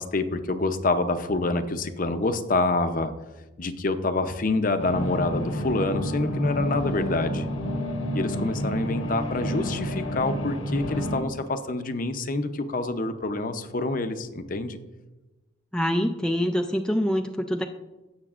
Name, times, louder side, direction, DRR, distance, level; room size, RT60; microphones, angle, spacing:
voice 1, 0.0-3.1 3.6-7.4 8.1-14.8, left 2 dB, 40° left, 9 dB, 0.6 m, -27 dB
sound 1, 4.8-11.2, equal, 85° left, 1.3 m, -29 dB
voice 2, 15.7-17.6, equal, 5° left, 3 dB, 0.3 m, -25 dB
17.0 x 6.9 x 2.5 m, 1.1 s
head